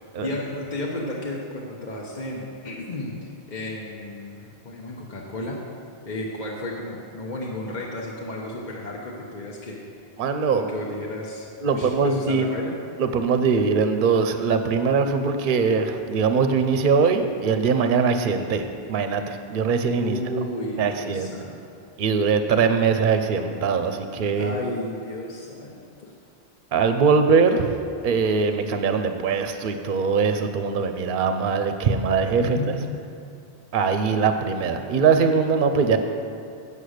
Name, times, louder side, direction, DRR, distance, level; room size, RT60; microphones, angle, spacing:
voice 1, 0.2-5.6 6.0-9.9 10.5-12.8 20.0-21.6 24.3-26.1 32.4-32.9, left 1 dB, 45° left, -3 dB, 1.1 m, -33 dB
voice 2, 10.2-10.6 11.6-12.5 13.0-20.1 20.8-21.3 22.0-24.6 26.7-27.8 28.0-32.8 33.7-36.0, right 5 dB, 55° right, 7 dB, 0.8 m, -22 dB
8.5 x 7.0 x 6.5 m, 2.5 s
omnidirectional pair, 1.1 m